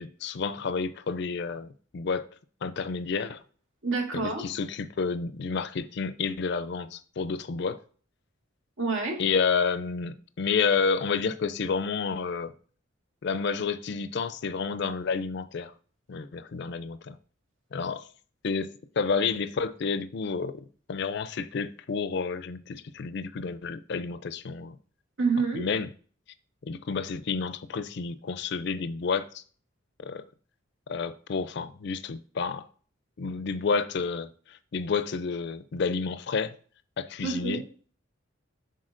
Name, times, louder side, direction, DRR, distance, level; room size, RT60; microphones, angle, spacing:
voice 1, 0.0-2.3 2.6-3.4 4.1-7.8 9.2-12.5 13.2-15.7 16.1-17.2 17.7-18.1 18.4-24.8 25.5-25.9 26.6-29.4 30.0-30.2 30.9-32.7 33.2-36.6 37.0-37.6, left 5 dB, 55° left, 0.4 m, -30 dB
voice 2, 3.8-4.5 8.8-9.2 25.2-25.7 37.2-37.6, right 4 dB, 85° right, 2.0 m, -27 dB
10.5 x 4.0 x 2.5 m
head